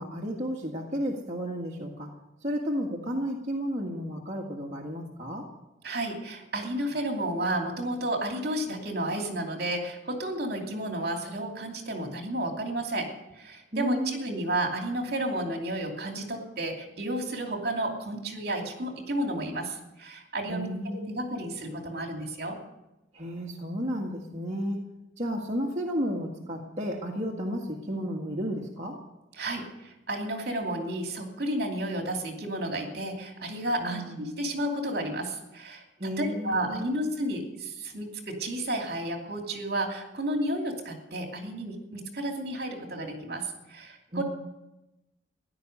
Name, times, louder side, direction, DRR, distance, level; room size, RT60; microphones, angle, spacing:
voice 1, 0.0-2.1 2.4-5.5 13.7-14.4 20.5-21.4 23.1-24.8 25.2-29.0 33.8-34.3 36.0-37.0 44.1-44.2, equal, 35° right, -2 dB, 1.8 m, -33 dB
voice 2, 5.8-13.1 13.3-22.6 29.3-44.2, right 1 dB, 55° right, 2 dB, 2.7 m, -32 dB
15.5 x 11.0 x 6.6 m, 0.94 s
head